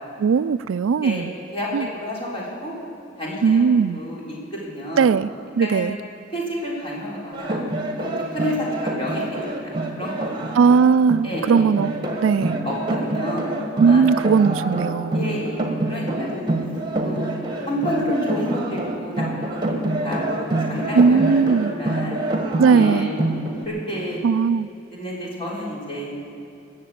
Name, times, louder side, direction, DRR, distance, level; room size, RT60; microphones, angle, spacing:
voice 1, 0.2-1.3 1.7-1.8 3.4-4.0 5.0-5.3 5.6-5.9 10.6-11.9 12.2-12.6 13.8-15.2 20.9-21.7 22.6-23.1 24.2-24.7, right 5 dB, 90° right, 17 dB, 0.4 m, -18 dB
voice 2, 1.5-2.7 3.2-5.1 5.6-5.9 6.3-7.6 8.0-10.6 11.2-11.6 12.6-13.5 13.9-14.0 15.1-15.6 15.9-16.5 17.0-17.3 17.6-19.6 20.0-22.2 22.6-23.1 23.7-24.2 24.9-26.2, equal, 30° left, -5 dB, 3.7 m, -30 dB
sound 1, 7.3-23.6, right 1 dB, 25° right, 1.5 m, -26 dB
20.0 x 7.4 x 8.6 m, 2.7 s
head